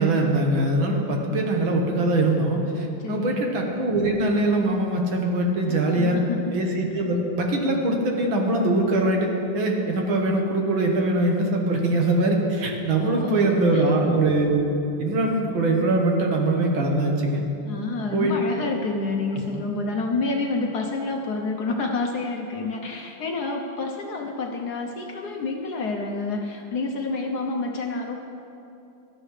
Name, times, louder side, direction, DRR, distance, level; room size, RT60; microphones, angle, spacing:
voice 1, 0.0-6.2 6.5-14.7 15.0-17.4 18.1-18.7 19.3-19.4, right 2 dB, 70° right, 1 dB, 2.1 m, -22 dB
voice 2, 3.0-3.5 5.7-6.5 13.0-13.9 17.6-28.2, left 3 dB, 60° left, 2 dB, 1.2 m, -29 dB
17.5 x 13.0 x 3.3 m, 2.8 s
omnidirectional pair, 2.3 m